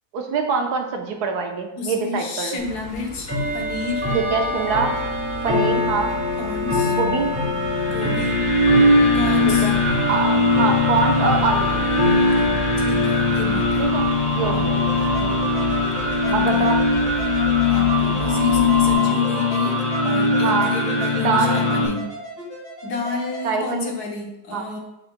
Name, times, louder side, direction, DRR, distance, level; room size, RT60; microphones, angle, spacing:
voice 1, 0.1-2.6 4.1-4.9 5.4-6.1 7.0-7.3 9.5-9.8 10.1-11.7 13.8-14.0 14.3-14.7 15.2-15.4 16.3-16.8 20.4-20.7 21.2-21.6 23.4-23.9 24.5-24.6, right 5 dB, 80° right, 4 dB, 1.3 m, -24 dB
voice 2, 1.8-4.1 6.4-7.0 7.9-8.4 9.1-9.7 12.2-13.9 14.5-14.7 16.3-16.7 17.7-22.1 22.8-24.8, left 3 dB, 75° left, 1 dB, 1.6 m, -31 dB
Bell / Tick-tock, 2.6-18.9, left 2 dB, 10° right, 2.0 m, -26 dB
sound 1, 7.6-21.9, left 2 dB, 15° left, 2.1 m, -20 dB
sound 2, 14.7-23.4, equal, 45° left, 2.3 m, -36 dB
7.1 x 6.2 x 2.2 m, 0.93 s
omnidirectional pair, 1.7 m